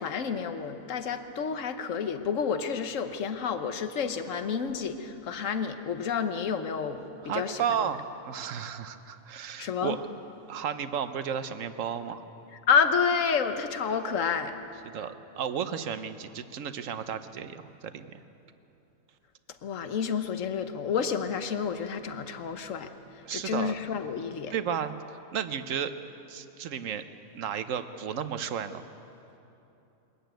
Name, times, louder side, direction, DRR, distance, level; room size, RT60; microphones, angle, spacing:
voice 1, 0.0-7.6 9.6-10.0 12.7-14.5 19.6-24.5, left 6 dB, 65° left, 8 dB, 1.4 m, -29 dB
voice 2, 7.2-10.0 10.5-12.2 14.8-18.2 23.2-23.7 24.5-25.9 26.3-27.0 27.3-28.8, right 8 dB, 65° right, 10 dB, 1.2 m, -33 dB
22.5 x 13.5 x 9.1 m, 2.9 s
omnidirectional pair, 1.5 m